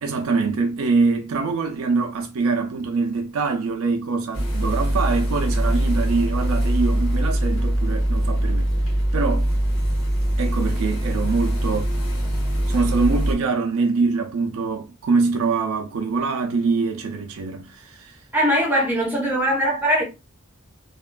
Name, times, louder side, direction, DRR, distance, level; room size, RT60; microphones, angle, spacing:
voice 1, 0.0-8.7 9.1-9.5 10.4-12.0 12.7-18.2, right 4 dB, 90° right, 0.4 m, -24 dB
sound 1, 4.3-13.4, right 1 dB, 85° left, 1.1 m, -22 dB
voice 2, 18.3-20.0, equal, 10° right, 0.7 m, -20 dB
2.9 x 2.3 x 2.2 m
head